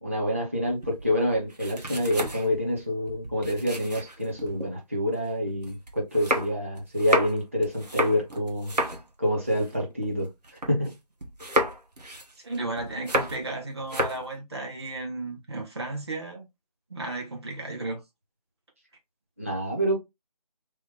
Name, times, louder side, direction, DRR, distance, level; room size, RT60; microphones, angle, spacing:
voice 1, 0.0-8.7 9.2-10.3 10.7-10.9 19.4-20.0, equal, 20° right, 0.6 m, -27 dB
sound 1, 0.6-4.7 5.1-10.9 11.2-13.5 13.8-14.3, equal, 80° right, 0.9 m, -31 dB
voice 2, 12.4-16.5 16.9-18.0, right 2 dB, 40° right, 0.9 m, -34 dB
2.9 x 2.1 x 3.4 m
figure-of-eight pair, 160°, 21 cm